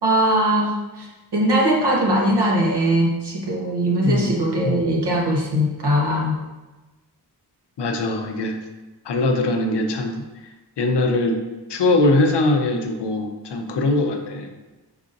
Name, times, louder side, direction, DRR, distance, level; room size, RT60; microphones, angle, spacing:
voice 1, 0.0-1.1 1.3-6.4, right 1 dB, 75° right, -2 dB, 0.9 m, -20 dB
voice 2, 7.8-8.6 9.1-10.2 10.8-11.4 11.7-14.5, left 2 dB, 85° left, 4 dB, 0.5 m, -21 dB
4.8 x 2.6 x 2.5 m, 1.1 s
wide cardioid pair, 75°, 41 cm